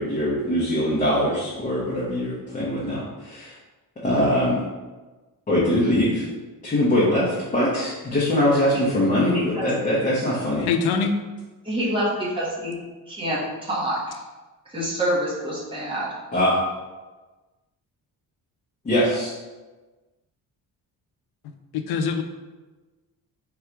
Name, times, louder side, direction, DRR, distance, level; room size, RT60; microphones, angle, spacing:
voice 1, 0.0-3.5 4.0-4.6 5.5-6.3 6.6-10.7 16.3-16.6 18.8-19.3, left 1 dB, 20° left, -7 dB, 0.7 m, -22 dB
voice 2, 10.7-11.2 21.4-22.2, left 5 dB, 90° left, 7 dB, 0.5 m, -24 dB
voice 3, 11.6-12.8 13.1-14.2 14.7-16.1, right 1 dB, 15° right, -6 dB, 0.9 m, -26 dB
3.8 x 2.3 x 4.4 m, 1.2 s
cardioid pair, 165°, 37 cm